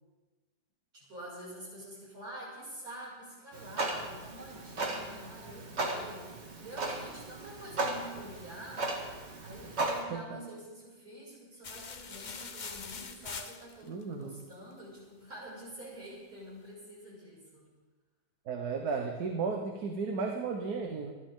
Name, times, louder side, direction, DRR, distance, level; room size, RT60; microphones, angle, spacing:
voice 1, 0.9-8.9 9.4-17.7, right 1 dB, 70° right, -6 dB, 6.6 m, -47 dB
Clock, 3.5-10.0, right 2 dB, 45° right, 1.9 m, -36 dB
voice 2, 9.8-10.4 13.9-14.4 18.5-21.1, right 4 dB, 90° right, 3 dB, 1.6 m, -34 dB
sound 1, 11.6-14.0, left 5 dB, 40° left, 0.8 m, -43 dB
25.5 x 11.0 x 3.7 m, 1.3 s
omnidirectional pair, 1.6 m